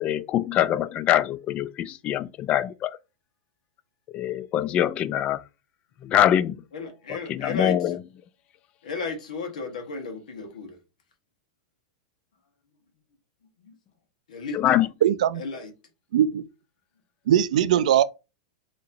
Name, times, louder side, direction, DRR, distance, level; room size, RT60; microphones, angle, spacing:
voice 1, 0.0-2.9 4.1-5.4 6.0-6.6 7.3-8.0 14.5-14.9, left 11 dB, 30° left, 0.3 m, -23 dB
voice 2, 6.7-8.0 8.8-10.8 13.6-13.8 14.3-14.8 15.3-15.7, left 4 dB, 85° left, 1.3 m, -34 dB
voice 3, 15.0-15.4 16.1-16.4 17.3-18.0, right 10 dB, 75° right, 0.3 m, -20 dB
4.2 x 2.9 x 2.6 m
hypercardioid pair, 130°, 4 cm